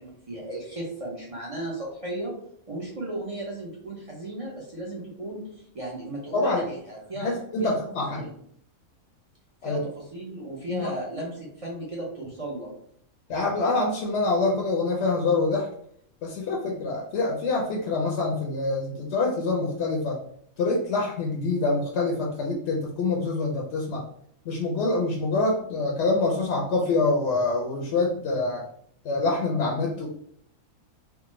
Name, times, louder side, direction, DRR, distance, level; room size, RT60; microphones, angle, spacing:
voice 1, 0.0-2.3 2.7-5.5 5.7-7.8 8.1-8.3 9.6-12.7, right 1 dB, 45° right, -4 dB, 0.5 m, -35 dB
voice 2, 6.3-6.6 7.2-8.3 9.6-9.8 10.7-10.9 13.3-15.7 16.2-20.2 20.6-24.0 24.5-28.6 29.0-30.1, left 3 dB, 65° left, -1 dB, 0.8 m, -25 dB
3.3 x 2.0 x 3.0 m, 0.66 s
omnidirectional pair, 1.4 m